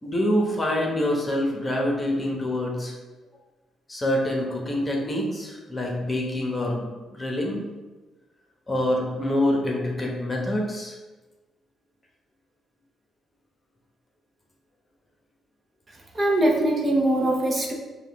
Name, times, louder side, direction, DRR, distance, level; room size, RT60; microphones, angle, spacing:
voice 1, 0.0-2.9 3.9-6.8 7.1-7.6 8.7-11.0, left 1 dB, 25° left, -1 dB, 1.0 m, -26 dB
voice 2, 15.9-17.7, right 1 dB, 35° right, 0 dB, 0.7 m, -22 dB
4.9 x 2.4 x 3.5 m, 1.2 s
cardioid pair, 90°, 0 cm